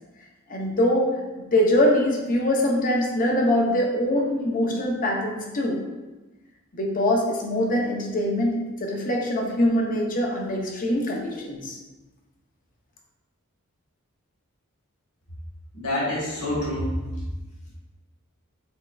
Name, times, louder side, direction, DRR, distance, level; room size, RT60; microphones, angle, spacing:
voice 1, 0.5-1.1 1.4-5.8 6.7-11.8, left 1 dB, 40° left, -1 dB, 0.6 m, -23 dB
voice 2, 15.7-17.0, left 1 dB, 80° left, -5 dB, 1.3 m, -27 dB
4.1 x 3.5 x 2.3 m, 1.2 s
head